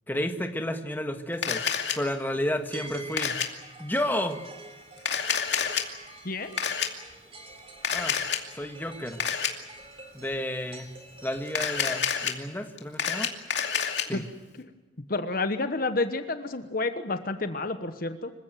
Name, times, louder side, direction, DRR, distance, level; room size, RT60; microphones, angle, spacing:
voice 1, 0.1-1.6 1.9-3.4 3.8-4.4 7.9-8.2 8.5-9.2 10.1-10.9 11.2-13.3 14.1-14.2, left 1 dB, 10° left, 5 dB, 1.6 m, -31 dB
Camera, 1.4-2.0 3.2-3.5 5.0-5.8 6.6-6.9 7.8-8.4 9.2-9.5 11.5-12.3 12.8-14.0, left 7 dB, 65° left, 2.6 m, -28 dB
sound 1, 2.7-12.0, right 2 dB, 30° right, 3.6 m, -46 dB
voice 2, 6.2-6.6 14.1-14.2 14.6-14.7 15.1-18.3, left 3 dB, 50° left, 9 dB, 1.2 m, -30 dB
26.0 x 16.0 x 9.2 m, 1.2 s
head